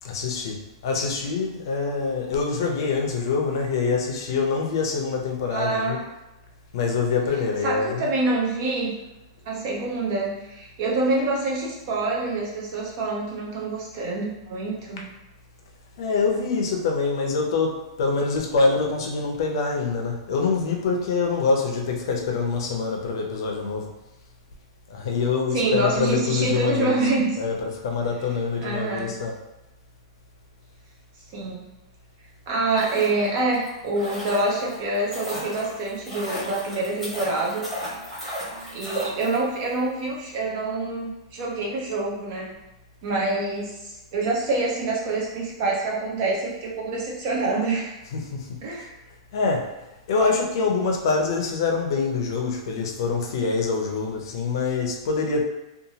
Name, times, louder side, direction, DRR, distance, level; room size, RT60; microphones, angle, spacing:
voice 1, 0.0-6.0 6.7-8.1 15.0-15.1 16.0-23.9 24.9-27.1 27.4-29.3 48.0-48.9 49.3-49.7 50.1-55.4, left 4 dB, 55° left, 2 dB, 0.6 m, -25 dB
voice 2, 5.5-6.0 7.6-8.9 9.5-15.1 25.5-27.4 28.6-29.2 31.3-31.7 32.5-37.7 38.7-42.5 43.0-47.9 48.6-48.9, right 2 dB, 35° right, -3 dB, 0.5 m, -26 dB
sound 1, 32.6-39.7 40.0-40.1, right 1 dB, 5° right, 1.0 m, -35 dB
2.8 x 2.3 x 2.7 m, 0.94 s
supercardioid pair, 170°, 3 cm